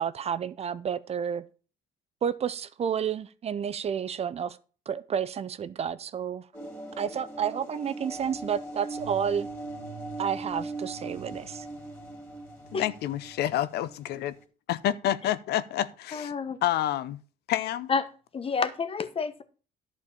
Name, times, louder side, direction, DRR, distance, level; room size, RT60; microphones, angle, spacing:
voice 1, 0.0-1.5 2.2-4.6 4.9-6.5 7.0-9.5 10.2-11.7, right 8 dB, 40° right, 0.5 m, -30 dB
sound 1, 6.5-14.4, right 2 dB, 10° left, 3.2 m, -40 dB
voice 2, 12.7-14.3 14.7-16.3 16.6-17.2 17.5-17.9, left 12 dB, 75° left, 0.6 m, -28 dB
voice 3, 16.1-16.6 17.9-18.0 18.3-19.4, left 5 dB, 35° left, 1.1 m, -29 dB
11.0 x 4.4 x 6.9 m
cardioid pair, 110°, 17 cm